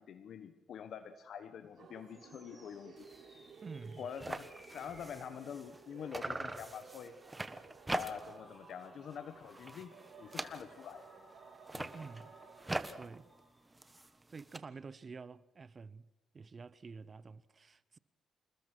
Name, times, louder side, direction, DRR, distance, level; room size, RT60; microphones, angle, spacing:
voice 1, 0.0-3.1 4.0-7.2 7.9-11.1 11.7-11.9, left 7 dB, 65° left, 1.1 m, -46 dB
sound 1, 1.7-14.0, equal, ahead, 8.0 m, -62 dB
sound 2, 1.8-12.9, right 6 dB, 60° right, 2.6 m, -57 dB
sound 3, 3.0-3.2 3.6-3.7 3.9-5.8 6.1-8.5 8.8-9.2 9.5-11.0 11.5-14.6, right 2 dB, 15° right, 1.4 m, -43 dB
voice 2, 3.6-4.1 11.9-12.4 13.0-13.3 14.3-16.1 16.3-18.0, right 4 dB, 35° right, 0.8 m, -49 dB
28.0 x 20.0 x 6.2 m
cardioid pair, 90°, 0 cm